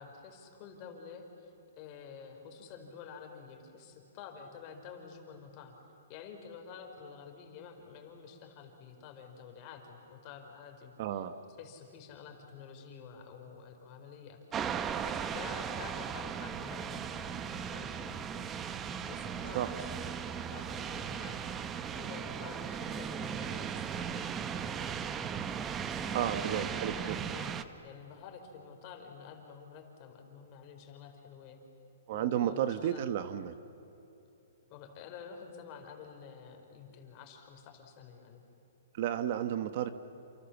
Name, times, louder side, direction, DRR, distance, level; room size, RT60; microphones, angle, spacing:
voice 1, 0.0-5.8 6.1-11.2 11.6-14.6 15.0-18.5 18.9-25.0 25.9-31.6 32.1-33.0 34.7-38.4, left 6 dB, 30° left, 4 dB, 4.4 m, -49 dB
voice 2, 11.0-11.4 19.5-19.7 26.1-27.2 32.1-33.6 38.9-39.9, right 11 dB, 45° right, 11 dB, 1.2 m, -32 dB
sound 1, 14.5-27.6, right 7 dB, 15° right, 1.0 m, -37 dB
29.0 x 28.5 x 7.2 m, 2.9 s
hypercardioid pair, 160°, 0 cm